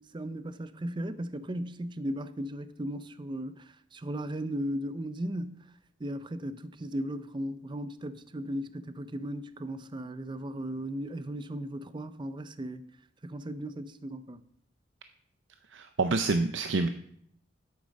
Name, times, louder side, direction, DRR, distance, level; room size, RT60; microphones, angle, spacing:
voice 1, 0.0-5.7 6.0-12.9 13.2-14.4, right 1 dB, 25° right, 0.5 m, -36 dB
voice 2, 15.7-16.9, right 3 dB, 75° right, 0.6 m, -27 dB
10.0 x 8.4 x 5.2 m
head